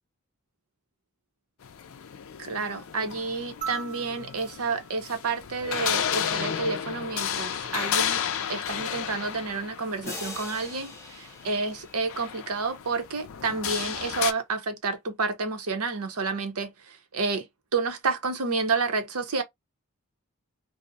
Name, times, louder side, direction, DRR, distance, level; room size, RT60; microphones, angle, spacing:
sound 1, 1.6-14.3, left 8 dB, 65° left, 0.4 m, -33 dB
voice 1, 2.4-17.5 17.7-19.4, right 4 dB, 80° right, 0.7 m, -30 dB
sound 2, 3.6-6.2 7.8-7.9, right 5 dB, 35° right, 0.6 m, -41 dB
sound 3, 10.0-12.8, left 3 dB, 10° left, 0.6 m, -42 dB
2.6 x 2.0 x 2.6 m
head